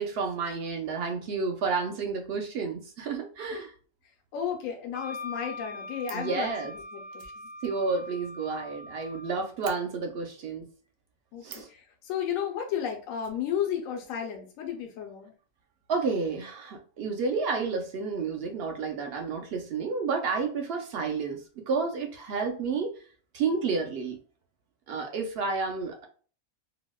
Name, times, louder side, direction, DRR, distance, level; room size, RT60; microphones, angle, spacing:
voice 1, 0.0-3.7 6.1-6.7 7.6-10.6 11.4-11.7 15.9-23.0 23.3-24.2 24.9-26.1, right 4 dB, 60° right, 4 dB, 0.7 m, -30 dB
voice 2, 4.3-7.5 11.3-15.3, left 8 dB, 80° left, 2 dB, 1.0 m, -33 dB
Wind instrument woodwind instrument, 4.9-9.4, left 2 dB, 55° left, 0.5 m, -42 dB
Fire, 5.6-6.3 7.1-8.9 9.2-9.3 9.6-9.8 11.4-11.8 13.2-14.1 14.3-14.4 14.6-14.8, right 7 dB, 80° right, 1.0 m, -49 dB
4.0 x 2.0 x 2.2 m, 0.40 s
omnidirectional pair, 1.4 m